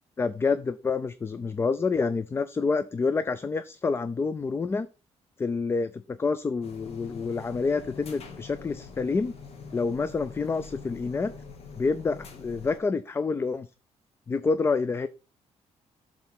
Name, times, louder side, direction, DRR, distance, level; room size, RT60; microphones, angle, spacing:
voice 1, 0.2-4.9 5.4-9.3 9.7-11.3 11.8-13.7 14.3-15.1, left 4 dB, 20° left, 14 dB, 0.3 m, -28 dB
sound 1, 6.6-12.8, left 5 dB, 60° left, 1.6 m, -44 dB
7.8 x 3.7 x 5.8 m, 0.32 s
cardioid pair, 155°, 12 cm